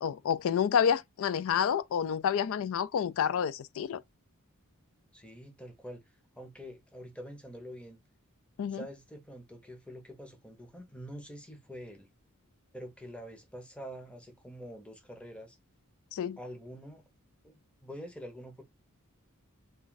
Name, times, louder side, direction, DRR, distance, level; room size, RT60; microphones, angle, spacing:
voice 1, 0.0-4.0 8.6-8.8 16.1-16.4, left 8 dB, 65° left, 0.3 m, -29 dB
voice 2, 5.1-6.0 6.4-8.0 8.7-12.1 12.7-15.6 16.4-17.0 17.4-18.6, equal, 5° left, 0.7 m, -46 dB
2.5 x 2.3 x 3.9 m
head